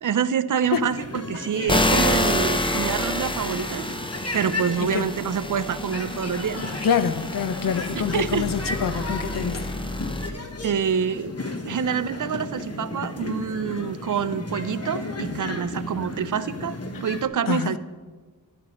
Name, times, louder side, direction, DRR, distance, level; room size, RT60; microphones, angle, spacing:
voice 1, 0.0-3.8 4.3-6.6 8.1-8.4 10.6-11.3 11.7-17.8, right 7 dB, 55° right, 0.5 m, -26 dB
sound 1, 0.6-17.3, left 2 dB, 40° left, 1.1 m, -34 dB
sound 2, 1.7-10.3, left 1 dB, 15° left, 0.6 m, -28 dB
voice 2, 6.8-9.8 16.9-17.0 17.5-17.8, left 7 dB, 60° left, 0.6 m, -26 dB
12.0 x 10.5 x 3.0 m
wide cardioid pair, 80°, 37 cm